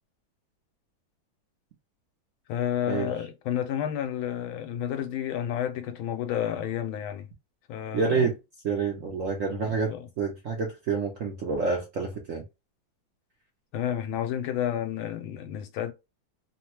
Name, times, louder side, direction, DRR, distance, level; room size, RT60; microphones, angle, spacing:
voice 1, 2.5-7.3 7.7-8.3 9.6-10.1 13.7-15.9, left 10 dB, 85° left, 1.4 m, -31 dB
voice 2, 7.9-8.3 8.6-12.4, right 4 dB, 65° right, 0.7 m, -28 dB
3.4 x 2.2 x 2.8 m
omnidirectional pair, 2.3 m